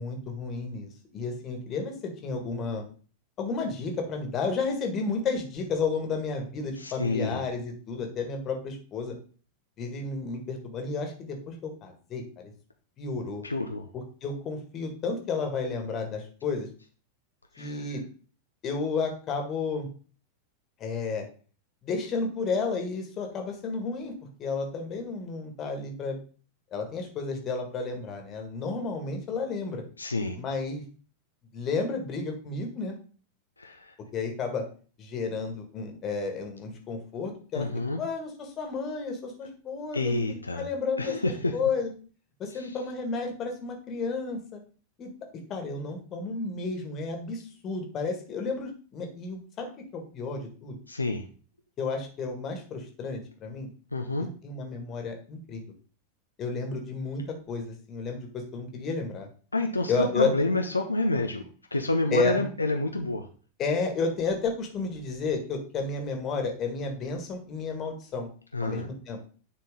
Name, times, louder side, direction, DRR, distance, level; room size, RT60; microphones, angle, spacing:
voice 1, 0.0-1.9 2.2-2.9 3.4-9.1 9.8-12.5 13.0-13.4 14.2-16.7 17.6-18.0 18.6-19.9 20.8-21.3 21.8-24.1 24.4-26.2 26.7-29.8 30.4-30.8 31.5-33.0 34.1-34.6 35.0-37.7 38.0-41.2 41.5-41.9 42.4-44.6 45.0-45.1 45.5-50.8 51.8-53.7 54.4-55.6 56.4-59.3 59.9-60.3 62.1-62.4 63.6-68.3 68.6-69.2, left 4 dB, 30° left, 3 dB, 1.9 m, -32 dB
voice 2, 6.8-7.4 13.4-13.9 17.5-17.9 30.0-30.4 33.6-34.0 37.5-38.0 39.9-40.7 41.0-41.6 42.5-42.8 50.9-51.3 53.9-54.4 59.5-63.3 68.5-68.9, left 2 dB, 80° left, 4 dB, 0.7 m, -29 dB
9.7 x 4.2 x 3.7 m, 0.40 s
figure-of-eight pair, 90°, 0 cm